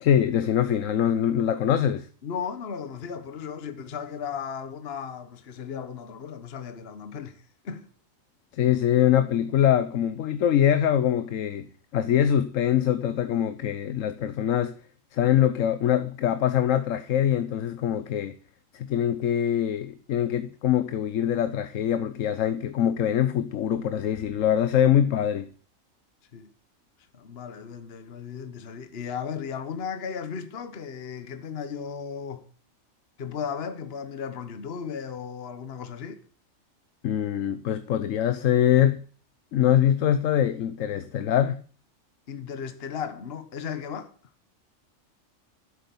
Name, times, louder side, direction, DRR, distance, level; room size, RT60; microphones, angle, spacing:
voice 1, 0.0-2.1 8.5-11.7 11.9-14.8 15.1-18.3 18.7-25.5 37.0-39.0 39.5-41.6, left 10 dB, 75° left, 1.1 m, -23 dB
voice 2, 2.2-7.9 26.3-26.5 27.1-32.5 33.2-36.2 42.3-44.1, left 7 dB, 50° left, 1.3 m, -35 dB
12.0 x 8.3 x 7.0 m
omnidirectional pair, 1.4 m